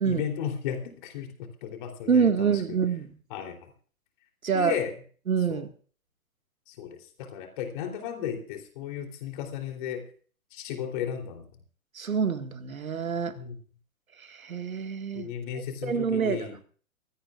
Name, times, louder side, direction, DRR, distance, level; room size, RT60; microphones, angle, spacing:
voice 1, 0.0-1.3 1.6-2.6 3.3-3.6 4.5-4.9 5.5-5.6 6.7-10.1 10.5-11.5 13.3-13.5 15.1-16.6, left 9 dB, 35° left, 4 dB, 3.4 m, -34 dB
voice 2, 2.1-3.1 4.4-4.8 5.3-5.7 12.0-13.3 14.2-15.3 15.8-16.5, right 6 dB, 70° right, 8 dB, 1.9 m, -26 dB
24.0 x 16.5 x 2.5 m, 0.42 s
figure-of-eight pair, 120°, 43 cm